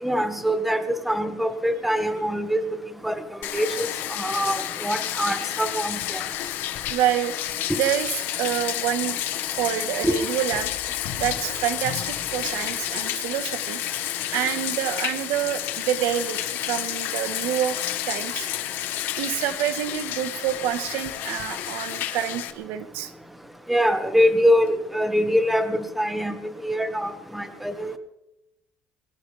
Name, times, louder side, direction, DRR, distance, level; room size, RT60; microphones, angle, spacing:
voice 1, 0.0-2.6 3.0-3.9 4.2-6.2 10.0-10.1 23.7-26.4 26.6-28.0, equal, 5° right, 8 dB, 1.8 m, -24 dB
Bathtub (filling or washing), 3.4-22.5, left 12 dB, 70° left, 1.5 m, -30 dB
voice 2, 6.9-7.3 7.7-9.2 9.5-10.7 11.1-13.8 14.3-17.8 18.1-18.5 19.2-23.1, right 11 dB, 90° right, 10 dB, 1.5 m, -27 dB
23.0 x 17.0 x 3.5 m, 0.86 s
cardioid pair, 120°, 4 cm